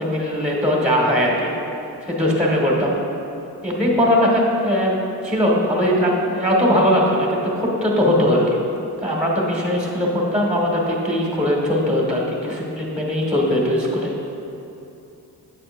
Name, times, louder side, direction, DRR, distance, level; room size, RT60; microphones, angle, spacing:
voice 1, 0.0-1.5 2.0-3.0 3.6-5.0 5.2-8.6 9.0-14.1, equal, 5° right, -3 dB, 1.7 m, -20 dB
8.9 x 8.0 x 2.6 m, 2.8 s
cardioid pair, 55°, 39 cm